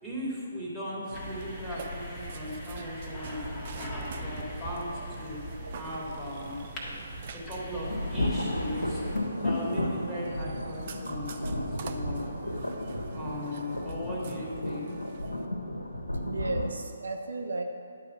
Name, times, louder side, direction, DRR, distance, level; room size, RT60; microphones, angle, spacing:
voice 1, 0.0-3.4 3.7-4.9 5.2-5.4 5.8-6.6 7.3-9.0 9.4-12.3 13.1-14.9, left 1 dB, 5° right, -9 dB, 2.7 m, -38 dB
Burping eructation, 1.0-15.5, right 6 dB, 45° right, 0.6 m, -46 dB
sound 1, 1.1-9.2, equal, 15° left, 1.7 m, -41 dB
sound 2, 7.8-16.7, left 1 dB, 90° left, 1.2 m, -33 dB
voice 2, 16.2-17.6, right 2 dB, 70° right, 4 dB, 0.9 m, -34 dB
11.0 x 4.8 x 7.0 m, 2.4 s
figure-of-eight pair, 140°, 0 cm